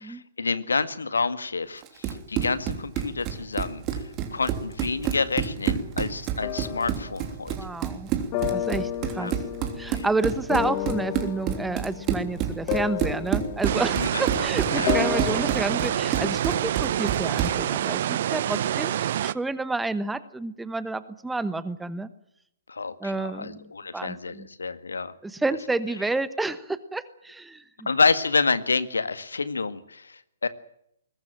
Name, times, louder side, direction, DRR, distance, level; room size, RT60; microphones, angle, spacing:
voice 1, 0.0-4.0 4.3-7.5 9.2-9.3 9.9-10.1 14.0-14.4 14.7-14.9 22.7-25.1 27.9-30.5, left 4 dB, 70° left, 14 dB, 1.8 m, -28 dB
Run, 1.8-17.7, right 9 dB, 25° right, 3.3 m, -29 dB
sound 1, 6.4-7.2 8.3-14.4 14.9-16.1, left 13 dB, 30° left, 2.0 m, -32 dB
voice 2, 7.6-8.1 8.5-9.3 9.8-22.1 23.0-23.7 23.9-24.5 25.2-27.6, right 3 dB, 5° right, 15 dB, 1.1 m, -30 dB
sound 2, 13.6-19.3, right 11 dB, 45° right, 0.8 m, -27 dB
22.0 x 20.0 x 7.7 m, 0.74 s
figure-of-eight pair, 125°, 0 cm